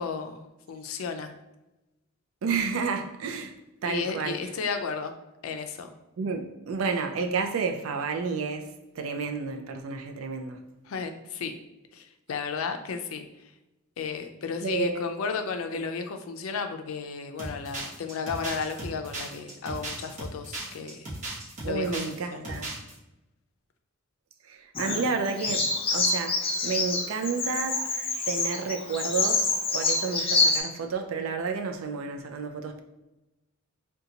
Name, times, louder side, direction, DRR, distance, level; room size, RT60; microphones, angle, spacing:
voice 1, 0.0-1.3 3.9-5.2 5.4-5.9 10.9-11.6 11.9-13.3 14.0-21.1 21.7-22.0 22.3-22.6, left 5 dB, 85° left, 6 dB, 0.4 m, -33 dB
voice 2, 2.4-3.5 3.8-4.5 6.2-8.7 9.0-10.6 14.6-15.0 21.6-22.7 24.5-27.8 28.3-32.8, right 5 dB, 85° right, 5 dB, 0.4 m, -31 dB
sound 1, 17.4-22.1 22.4-22.9, right 2 dB, 35° right, 1.0 m, -36 dB
Bird vocalization bird call bird song, 24.7-30.6, left 3 dB, 25° left, 0.5 m, -27 dB
3.8 x 2.2 x 2.8 m, 0.99 s
head